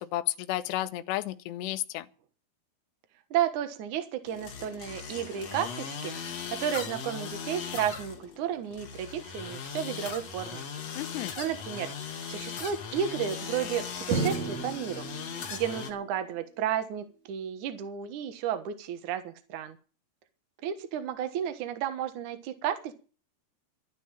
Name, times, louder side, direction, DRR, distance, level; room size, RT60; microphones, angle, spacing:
voice 1, 0.0-2.1 10.9-11.3, left 15 dB, 75° left, 2.6 m, -32 dB
voice 2, 3.3-10.6 11.4-11.9 12.3-15.1 15.5-19.8 20.6-22.9, right 9 dB, 80° right, 1.7 m, -32 dB
sound 1, 4.2-15.9, left 6 dB, 50° left, 2.0 m, -39 dB
Drum, 14.1-16.0, right 4 dB, 40° right, 4.2 m, -33 dB
12.5 x 9.7 x 8.9 m
omnidirectional pair, 5.8 m